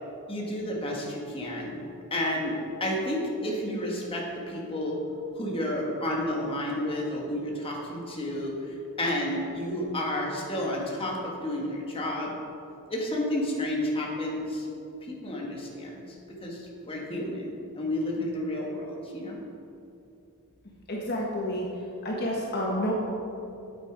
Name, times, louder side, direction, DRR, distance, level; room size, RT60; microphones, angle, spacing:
voice 1, 0.3-1.8 2.1-5.0 5.3-12.3 12.9-14.7 15.1-16.0 16.3-19.4, left 1 dB, 25° left, -2 dB, 1.6 m, -31 dB
voice 2, 20.9-21.7 22.0-22.9, left 1 dB, 50° left, -2 dB, 1.3 m, -29 dB
9.1 x 8.9 x 4.7 m, 2.7 s
head